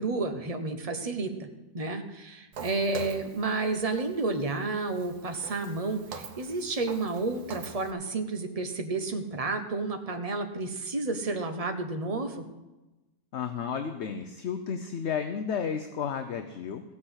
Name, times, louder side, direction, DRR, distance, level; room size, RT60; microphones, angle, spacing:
voice 1, 0.0-1.5 1.7-12.4, right 3 dB, 25° right, 6 dB, 1.0 m, -31 dB
Walk footsteps, 2.5-7.9, right 5 dB, 85° right, 1.5 m, -45 dB
voice 2, 13.3-16.8, left 7 dB, 55° left, 7 dB, 0.9 m, -32 dB
16.0 x 5.9 x 8.0 m, 1.1 s
omnidirectional pair, 1.6 m